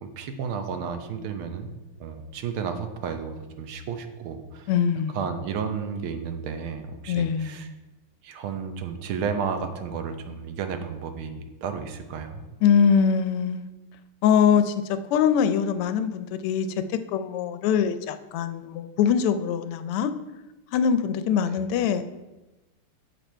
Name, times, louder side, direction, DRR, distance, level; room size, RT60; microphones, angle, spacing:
voice 1, 0.0-1.7 2.0-4.7 5.1-7.7 8.2-12.4 21.4-21.7, right 6 dB, 75° right, 7 dB, 1.6 m, -32 dB
voice 2, 4.7-5.2 7.1-7.6 12.6-13.7 14.2-16.7 17.1-20.1 20.7-22.0, left 7 dB, 85° left, 10 dB, 1.5 m, -23 dB
7.3 x 6.8 x 4.5 m, 1.1 s
omnidirectional pair, 2.4 m